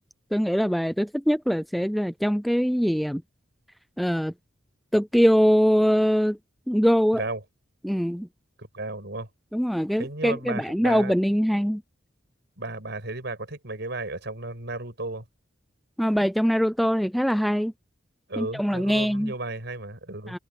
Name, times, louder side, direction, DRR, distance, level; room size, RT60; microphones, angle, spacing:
voice 1, 0.3-3.2 4.0-4.3 4.9-6.4 6.7-7.2 7.8-8.3 9.5-11.8 16.0-17.7 18.4-19.3 20.3-20.4, equal, ahead, 0.4 m, -22 dB
voice 2, 8.7-9.3 10.0-11.1 12.6-15.2 18.3-20.4, right 2 dB, 60° right, 6.1 m, -34 dB
head